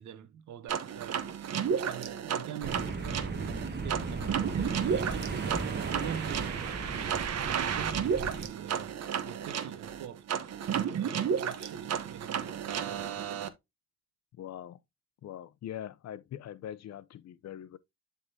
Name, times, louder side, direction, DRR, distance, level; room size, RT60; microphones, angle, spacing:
voice 1, 0.0-7.2 7.5-13.0, right 9 dB, 75° right, 1.1 m, -44 dB
sound 1, 0.7-13.5, right 7 dB, 55° right, 1.1 m, -33 dB
sound 2, 2.6-8.5, right 4 dB, 35° right, 1.8 m, -36 dB
voice 2, 14.4-14.8 15.2-17.8, left 11 dB, 60° left, 0.7 m, -42 dB
11.0 x 3.7 x 2.8 m
cardioid pair, 90°, 30 cm